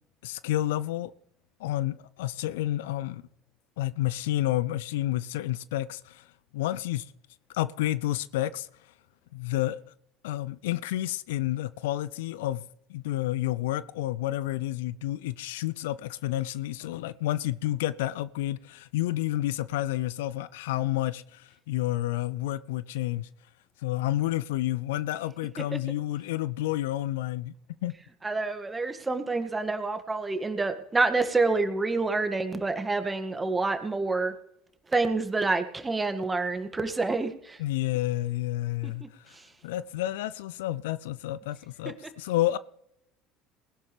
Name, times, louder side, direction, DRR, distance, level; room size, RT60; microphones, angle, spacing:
voice 1, 0.2-1.1 1.6-3.2 3.8-6.2 6.5-7.1 7.5-8.7 9.3-9.9 10.2-12.6 12.9-23.3 23.8-27.5 27.8-27.9 37.6-39.0 39.6-42.6, left 15 dB, 70° left, 0.4 m, -30 dB
voice 2, 28.2-34.3 34.9-37.6 38.8-39.1 39.3-39.4, right 3 dB, 15° right, 1.9 m, -28 dB
20.5 x 11.5 x 3.4 m
figure-of-eight pair, 65°, 0 cm